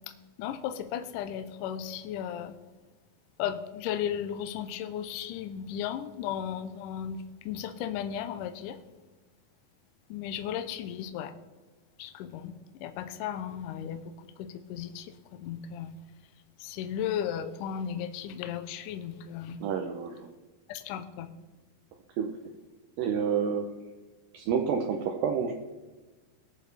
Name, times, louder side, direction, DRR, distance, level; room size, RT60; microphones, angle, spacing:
voice 1, 0.4-2.5 3.4-7.2 7.5-8.8 10.1-11.3 12.0-12.5 12.8-14.0 14.4-15.0 15.4-15.9 16.6-19.6 20.7-21.3, left 9 dB, 80° left, 8 dB, 2.0 m, -35 dB
voice 2, 19.6-20.3 22.2-22.3 23.0-23.7 24.3-25.5, right 7 dB, 75° right, 3 dB, 2.2 m, -29 dB
20.0 x 7.0 x 3.3 m, 1.2 s
omnidirectional pair, 4.3 m